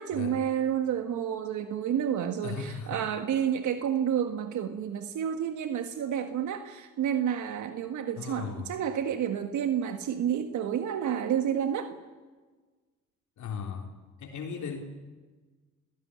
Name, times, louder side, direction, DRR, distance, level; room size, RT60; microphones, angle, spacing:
voice 1, 0.0-12.0, right 9 dB, 75° right, 7 dB, 1.6 m, -30 dB
voice 2, 2.4-3.0 8.2-8.7 13.4-13.9 14.2-14.8, left 6 dB, 70° left, 2 dB, 3.6 m, -37 dB
29.0 x 16.5 x 10.0 m, 1.4 s
cardioid pair, 90°, 30 cm